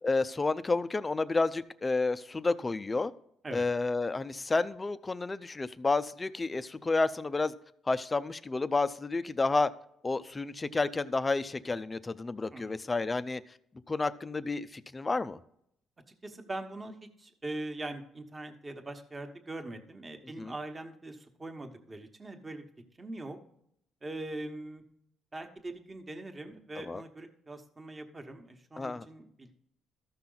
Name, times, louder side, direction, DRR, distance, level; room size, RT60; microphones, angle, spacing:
voice 1, 0.0-3.1 3.5-7.5 7.9-9.7 10.0-13.4 13.9-15.4 20.4-20.5 26.8-27.0 28.8-29.0, left 3 dB, 20° left, 0.5 m, -30 dB
voice 2, 16.2-22.7 23.0-23.4 24.0-24.8 25.3-29.5, right 2 dB, 20° right, 1.2 m, -42 dB
14.0 x 5.9 x 3.9 m
cardioid pair, 120°, 0 cm